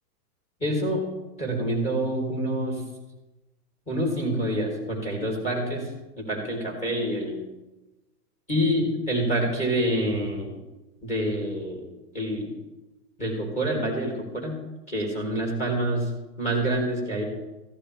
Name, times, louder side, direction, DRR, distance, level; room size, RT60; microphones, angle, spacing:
voice 1, 0.6-1.0 1.4-2.8 3.9-5.9 6.2-7.4 8.5-10.6 11.0-11.8 12.1-12.5 13.2-14.5 14.9-16.1 16.4-17.2, right 1 dB, 15° left, -2 dB, 4.0 m, -27 dB
15.0 x 12.5 x 3.5 m, 1.1 s
hypercardioid pair, 155°, 47 cm